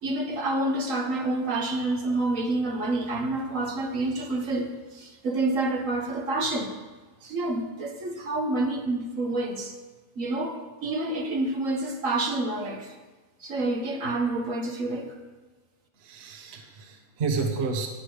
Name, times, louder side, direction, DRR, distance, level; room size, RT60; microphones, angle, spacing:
voice 1, 0.0-6.7 7.2-9.7 10.2-12.9 13.4-15.2, right 2 dB, 65° right, 3 dB, 1.6 m, -28 dB
voice 2, 16.0-17.9, right 4 dB, 50° right, 3 dB, 1.2 m, -30 dB
18.5 x 6.2 x 5.0 m, 1.3 s
omnidirectional pair, 1.5 m